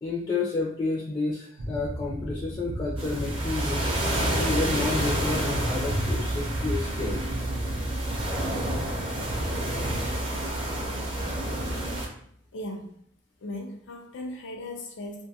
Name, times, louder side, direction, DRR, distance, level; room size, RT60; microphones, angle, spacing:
voice 1, 0.0-3.9 4.2-7.2, left 3 dB, 25° left, -6 dB, 0.4 m, -30 dB
sound 1, 1.6-10.2, right 1 dB, 85° right, 0.5 m, -34 dB
sound 2, 3.0-12.1, right 1 dB, 30° right, 0.5 m, -29 dB
voice 2, 12.5-13.0 13.4-15.3, left 1 dB, 90° left, 2 dB, 0.5 m, -37 dB
2.6 x 2.2 x 2.7 m, 0.67 s
head